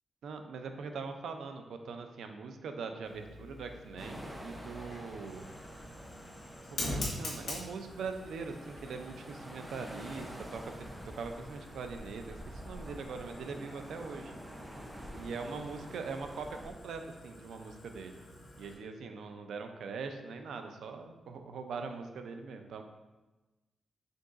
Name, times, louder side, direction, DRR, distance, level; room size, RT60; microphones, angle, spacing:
voice 1, 0.2-5.5 6.7-14.3 15.1-18.2 18.6-22.8, right 4 dB, 90° right, 6 dB, 0.4 m, -42 dB
Fire, 3.0-18.7, left 1 dB, 70° left, 1.5 m, -46 dB
sound 1, 4.0-16.7, equal, 10° right, 0.5 m, -48 dB
5.1 x 3.8 x 2.4 m, 1.1 s
wide cardioid pair, 115°, 0 cm